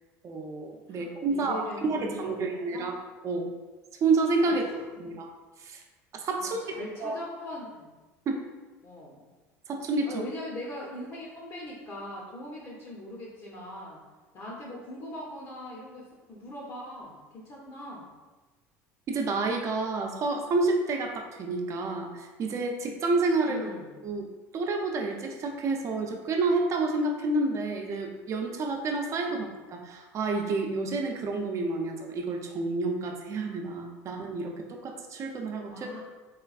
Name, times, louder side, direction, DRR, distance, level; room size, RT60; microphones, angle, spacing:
voice 1, 0.2-2.9 3.2-3.5 4.0-4.6 5.0-5.3 5.6-5.8 6.1-6.6 7.0-7.2 8.3-8.4 9.7-10.1 19.1-23.6 24.0-24.3 24.5-36.0, right 3 dB, 40° right, 3 dB, 0.6 m, -29 dB
voice 2, 0.9-2.9 4.4-5.0 6.4-8.0 8.8-9.2 10.0-14.0 14.3-18.0 23.5-24.0 35.7-36.0, left 1 dB, 45° left, -4 dB, 0.8 m, -41 dB
3.2 x 3.1 x 2.4 m, 1.2 s
supercardioid pair, 95°, 8 cm